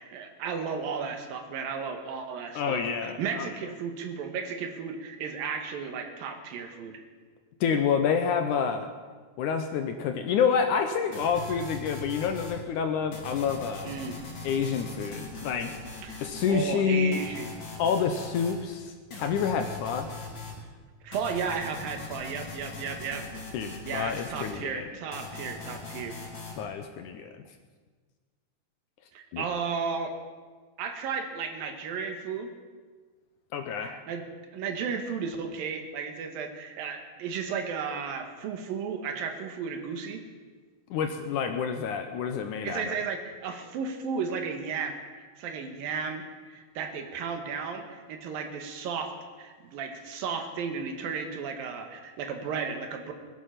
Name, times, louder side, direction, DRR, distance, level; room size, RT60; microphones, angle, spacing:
voice 1, 0.0-6.9 13.8-14.2 16.0-16.2 16.5-17.5 21.0-23.2 23.9-26.2 29.1-30.1 30.8-32.5 33.8-34.3 34.5-40.2 42.6-53.1, right 6 dB, 75° right, 5 dB, 3.1 m, -34 dB
voice 2, 2.6-3.5 7.6-8.9 9.4-13.9 14.4-15.8 16.2-17.2 17.8-18.9 19.2-20.1 23.5-24.8 26.6-27.3 29.3-29.5 33.5-34.0 40.9-42.9, left 6 dB, 75° left, 6 dB, 2.0 m, -28 dB
sound 1, 11.1-12.6 13.1-16.6 17.1-18.6 19.1-20.6 21.1-24.6 25.1-26.6, left 3 dB, 35° left, 3.1 m, -41 dB
20.5 x 11.0 x 5.8 m, 1.4 s
omnidirectional pair, 4.2 m